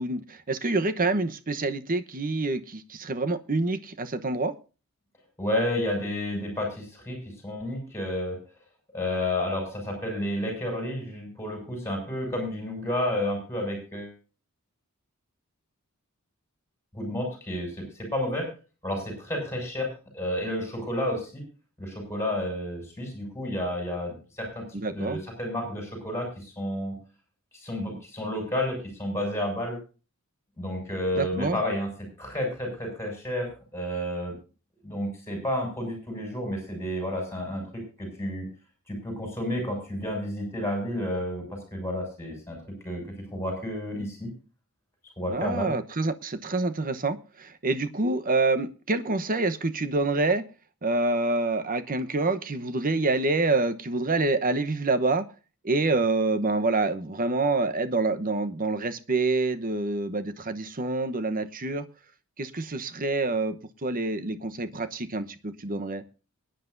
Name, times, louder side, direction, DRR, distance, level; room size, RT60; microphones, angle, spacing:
voice 1, 0.0-4.5 24.7-25.2 31.1-31.6 45.3-50.4 50.8-55.3 55.6-61.8 62.4-66.0, right 3 dB, 40° right, 1.0 m, -27 dB
voice 2, 5.4-8.4 8.9-14.1 16.9-18.5 18.8-19.9 20.1-21.4 21.8-24.6 24.9-27.0 27.5-29.8 30.6-31.9 32.2-34.3 34.8-38.5 38.9-42.6 42.8-43.0 43.3-44.3 45.2-45.7, left 1 dB, 15° left, 6.6 m, -31 dB
23.5 x 10.0 x 2.6 m
head